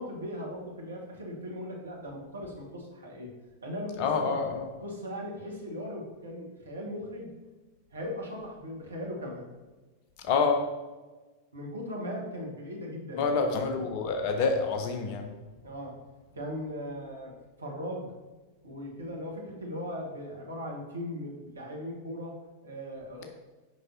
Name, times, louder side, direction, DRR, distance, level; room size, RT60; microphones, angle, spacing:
voice 1, 0.0-3.3 3.6-4.4 4.8-7.3 7.9-9.5 11.5-13.4 15.6-16.0 16.3-18.1 18.6-23.2, equal, 75° right, -1 dB, 1.4 m, -38 dB
voice 2, 4.0-4.7 10.2-10.7 13.2-15.3, left 4 dB, 45° left, 4 dB, 0.9 m, -27 dB
6.3 x 5.4 x 2.8 m, 1.2 s
figure-of-eight pair, 90°, 0 cm